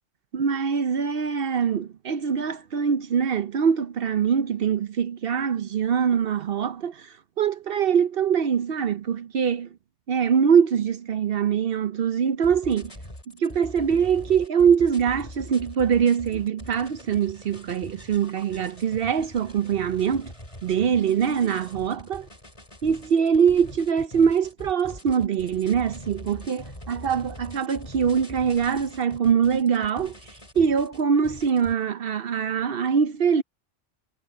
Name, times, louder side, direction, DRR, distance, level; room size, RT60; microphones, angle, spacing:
voice 1, 0.3-9.7 10.1-12.9 13.4-20.3 20.6-22.3 22.8-30.1 30.6-33.4, right 7 dB, 55° right, 0.8 m, -23 dB
sound 1, 12.4-31.7, left 1 dB, 25° left, 5.2 m, -43 dB
omnidirectional pair, 1.3 m